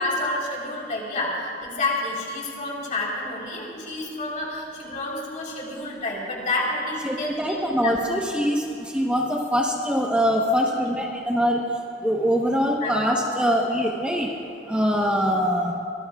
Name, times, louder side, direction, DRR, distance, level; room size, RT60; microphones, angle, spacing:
voice 1, 0.0-8.0 10.7-11.0 12.8-13.1, left 2 dB, 45° left, -3 dB, 3.8 m, -29 dB
voice 2, 7.0-11.7 12.0-14.3 14.7-15.8, equal, 5° right, -1 dB, 1.0 m, -23 dB
24.0 x 19.5 x 2.4 m, 2.4 s
head